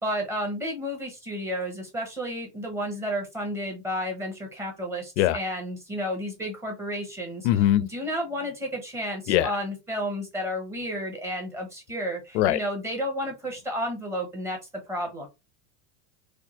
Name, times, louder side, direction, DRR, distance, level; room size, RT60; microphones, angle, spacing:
voice 1, 0.0-7.5 7.8-14.6 14.9-15.3, equal, 10° right, 0.8 m, -32 dB
voice 2, 7.4-7.8 9.3-9.6 12.3-12.6, left 13 dB, 75° left, 0.5 m, -21 dB
4.3 x 2.3 x 2.9 m
supercardioid pair, 170°, 34 cm